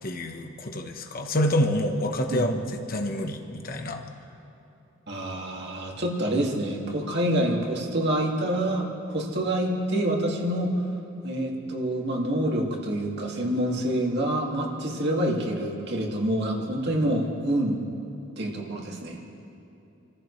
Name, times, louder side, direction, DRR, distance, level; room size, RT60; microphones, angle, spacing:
voice 1, 0.0-4.0, left 1 dB, 45° left, 4 dB, 1.2 m, -27 dB
voice 2, 5.1-10.8 11.2-17.9 18.4-19.2, right 1 dB, 55° right, -1 dB, 2.4 m, -27 dB
29.0 x 15.0 x 3.3 m, 2.9 s
head